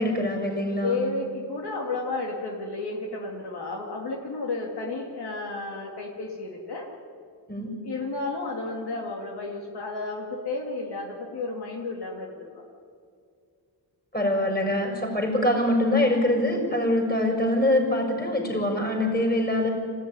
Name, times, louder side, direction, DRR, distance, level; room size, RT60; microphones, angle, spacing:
voice 1, 0.0-1.0 7.5-7.7 14.1-19.7, left 1 dB, 20° left, 1 dB, 6.3 m, -24 dB
voice 2, 0.8-6.9 7.8-12.6, left 3 dB, 60° left, -1 dB, 2.8 m, -32 dB
26.0 x 15.0 x 9.8 m, 2.3 s
cardioid pair, 105°, 44 cm